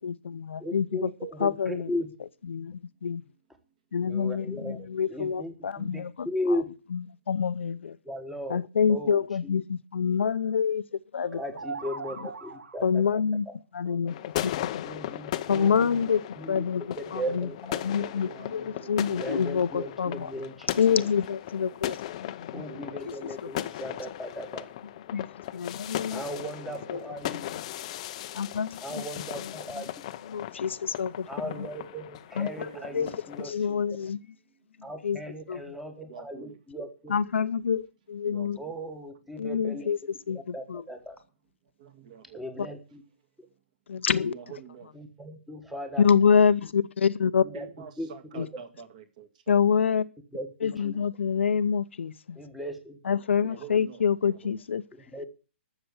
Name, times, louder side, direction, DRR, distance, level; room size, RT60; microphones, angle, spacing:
voice 1, 0.0-1.1 1.4-1.9 2.5-3.2 3.9-6.3 7.3-8.0 8.5-10.8 11.1-11.4 12.8-13.5 13.7-14.2 14.4-14.8 15.5-16.2 16.5-16.8 17.1-17.5 17.8-20.3 20.8-22.0 22.3-22.7 23.1-23.2 25.1-26.2 26.9-27.0 28.3-28.8 30.3-31.3 32.4-32.7 32.9-33.1 33.4-34.2 35.0-35.2 35.5-35.6 37.1-38.6 39.4-40.0 40.3-40.8 43.9-44.3 46.0-47.4 48.4-48.5 49.5-50.0 50.6-52.4 53.1-54.8, left 6 dB, 70° left, 0.7 m, -26 dB
voice 2, 0.6-2.1 4.1-6.7 8.0-9.5 11.3-13.5 14.8-16.0 16.4-17.8 19.2-21.1 22.5-24.7 26.1-27.5 28.8-29.9 31.3-33.8 34.8-37.2 38.6-39.9 40.5-41.2 42.3-43.0 44.9-46.1 47.4-47.7 48.0-48.5 50.3-50.9 52.3-53.0 55.1-55.3, equal, ahead, 1.3 m, -37 dB
sound 1, 11.2-13.0, right 4 dB, 85° right, 1.8 m, -40 dB
sound 2, 14.1-33.5, left 13 dB, 30° left, 0.6 m, -37 dB
voice 3, 18.0-19.1 22.7-23.0 26.7-26.9 32.5-33.2 36.1-36.5 38.3-38.5 41.8-42.2 44.3-44.9 47.5-49.5 53.4-54.6, right 7 dB, 35° right, 1.8 m, -46 dB
12.0 x 6.9 x 8.1 m
hypercardioid pair, 165°, 7 cm